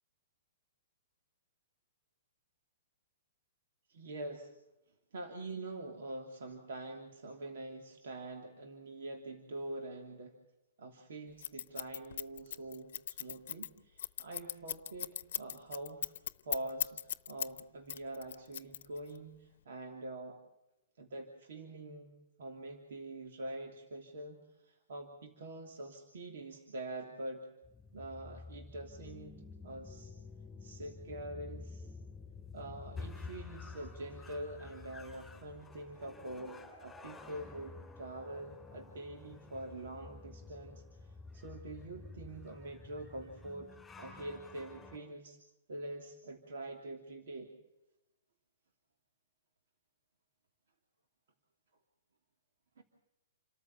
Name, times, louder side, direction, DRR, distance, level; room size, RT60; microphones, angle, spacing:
voice 1, 3.9-4.5 5.1-10.4 10.8-16.1 16.4-20.4 21.0-22.1 22.4-27.5 27.9-30.1 30.6-31.9 32.5-45.4 45.7-47.5 52.8-52.9, right 2 dB, 65° right, 3 dB, 3.0 m, -45 dB
Scissors, 11.4-17.6 17.9-19.2, left 10 dB, 60° left, 0.9 m, -38 dB
sound 1, 27.6-45.0, left 4 dB, 5° left, 3.7 m, -50 dB
28.5 x 14.0 x 7.3 m, 0.94 s
hypercardioid pair, 170°, 0 cm